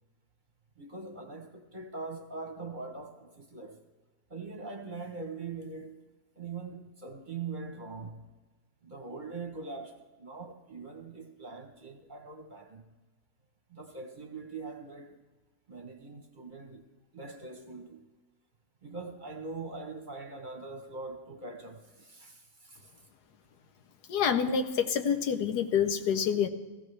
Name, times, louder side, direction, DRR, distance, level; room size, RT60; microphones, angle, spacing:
voice 1, 0.8-3.8 4.3-6.0 6.4-8.3 8.8-12.9 13.7-15.2 15.7-18.1 18.8-22.9, right 4 dB, 35° right, 1.0 m, -42 dB
voice 2, 24.1-26.5, left 7 dB, 90° left, 1.4 m, -27 dB
16.5 x 15.5 x 3.3 m
omnidirectional pair, 1.7 m